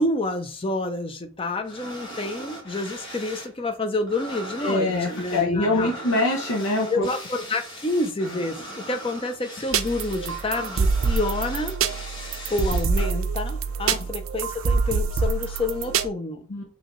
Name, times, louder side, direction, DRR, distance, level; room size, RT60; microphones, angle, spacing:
voice 1, 0.0-5.9 6.9-11.7 12.5-16.5, left 2 dB, 25° left, 7 dB, 0.5 m, -28 dB
sound 1, 1.6-3.5 3.8-13.1, right 1 dB, 55° left, 1.6 m, -39 dB
voice 2, 4.6-7.1 16.5-16.6, left 2 dB, 75° left, 0 dB, 0.8 m, -24 dB
sound 2, 9.7-16.1, right 5 dB, 70° right, 0.5 m, -25 dB
5.5 x 2.8 x 3.0 m, 0.37 s
head